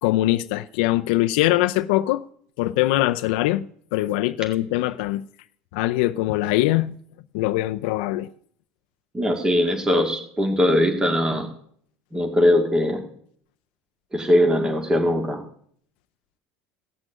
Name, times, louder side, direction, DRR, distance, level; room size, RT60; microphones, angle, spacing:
voice 1, 0.0-2.2 2.6-3.6 3.9-5.2 5.7-6.9 7.3-8.3, left 16 dB, 85° left, 0.5 m, -22 dB
voice 2, 9.1-11.5 12.1-13.0 14.1-15.4, left 1 dB, 15° right, 2.0 m, -20 dB
16.0 x 6.2 x 8.9 m
supercardioid pair, 120°, 5 cm